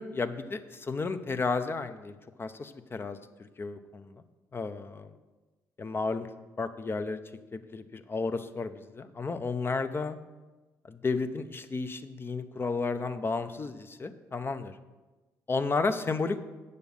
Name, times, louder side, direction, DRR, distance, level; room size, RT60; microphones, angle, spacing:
voice 1, 0.0-4.1 4.5-4.8 5.8-6.3 6.6-7.2 7.5-10.2 10.9-14.7 15.5-16.4, left 4 dB, 35° left, 10 dB, 0.7 m, -32 dB
8.1 x 6.8 x 5.5 m, 1.2 s
supercardioid pair, 65°, 7 cm